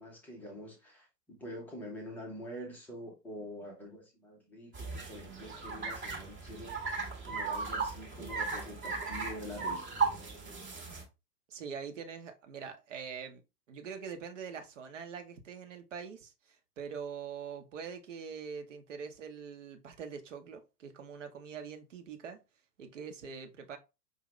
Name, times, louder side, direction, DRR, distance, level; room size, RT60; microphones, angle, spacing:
voice 1, 0.0-6.8 7.3-10.7, equal, 5° left, 0.6 m, -46 dB
sound 1, 4.7-11.0, right 4 dB, 15° right, 1.1 m, -36 dB
voice 2, 11.5-13.4 13.7-22.4 22.8-23.8, right 6 dB, 50° right, 1.0 m, -43 dB
5.3 x 2.8 x 3.1 m
figure-of-eight pair, 110°, 48 cm